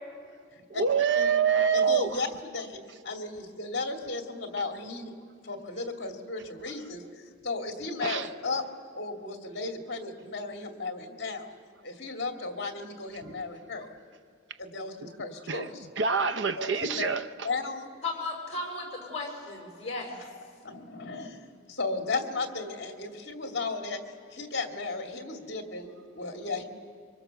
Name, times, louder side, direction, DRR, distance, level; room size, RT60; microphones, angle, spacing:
voice 1, 0.7-2.2 8.0-8.3 15.5-17.5, right 6 dB, 65° right, 0.7 m, -26 dB
voice 2, 1.7-5.1 5.4-8.6 8.9-11.6 11.8-13.9 14.6-15.9 16.6-17.1 17.4-17.9 20.6-24.0 24.3-26.6, left 3 dB, 55° left, 2.3 m, -35 dB
voice 3, 18.0-20.2, left 3 dB, 35° left, 5.5 m, -35 dB
25.0 x 24.0 x 6.9 m
head